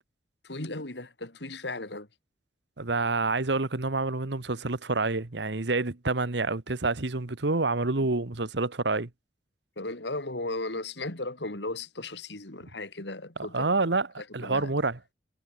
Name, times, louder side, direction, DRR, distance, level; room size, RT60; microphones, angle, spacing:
voice 1, 0.4-2.1 8.0-8.1 9.8-13.8 14.2-14.7, left 2 dB, 70° left, 3.0 m, -36 dB
voice 2, 2.8-9.1 13.5-14.1 14.3-15.0, right 3 dB, 70° right, 1.3 m, -27 dB
head